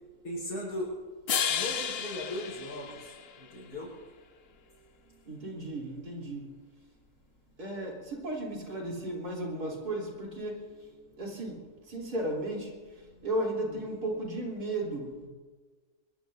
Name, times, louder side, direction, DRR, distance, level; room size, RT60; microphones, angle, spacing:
voice 1, 0.2-0.9 1.5-3.9 13.6-13.9, left 1 dB, 85° left, -8 dB, 5.4 m, -38 dB
sound 1, 1.3-3.6, left 8 dB, 55° left, 0.8 m, -33 dB
voice 2, 5.3-6.5 7.6-15.3, right 1 dB, 80° right, -2 dB, 4.0 m, -35 dB
23.5 x 22.0 x 2.7 m, 1.4 s
omnidirectional pair, 1.6 m